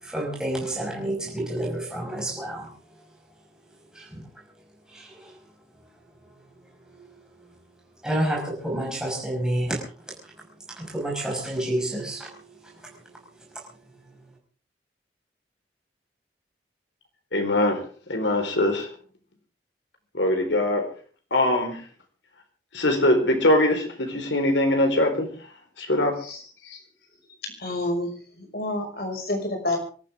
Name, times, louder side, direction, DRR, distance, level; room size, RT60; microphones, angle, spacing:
voice 1, 0.0-2.7 4.0-4.2 4.9-5.1 7.0-7.1 8.0-9.8 10.8-12.4, right 1 dB, 5° right, -2 dB, 5.5 m, -29 dB
voice 2, 17.3-17.8 18.1-18.9 20.1-20.8 21.3-21.8 22.7-25.3 25.8-26.2, left 1 dB, 90° left, 5 dB, 4.4 m, -22 dB
voice 3, 27.6-28.1 28.5-29.8, left 1 dB, 55° left, 3 dB, 5.8 m, -28 dB
25.0 x 14.0 x 3.7 m, 0.40 s
head